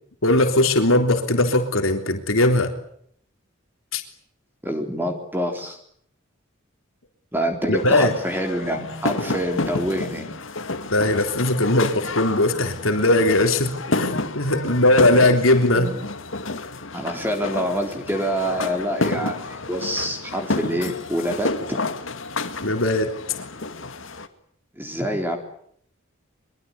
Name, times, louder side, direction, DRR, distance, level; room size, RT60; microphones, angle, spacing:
voice 1, 0.2-2.7 3.9-4.0 7.7-8.1 10.9-15.9 22.6-23.1, left 2 dB, 90° left, 5 dB, 3.5 m, -19 dB
voice 2, 4.6-5.8 7.3-10.3 15.7-16.1 16.9-21.8 24.8-25.4, equal, 10° right, 4 dB, 3.6 m, -26 dB
sound 1, 7.7-24.3, left 2 dB, 70° left, 2.3 m, -30 dB
23.5 x 23.5 x 8.4 m, 0.66 s
head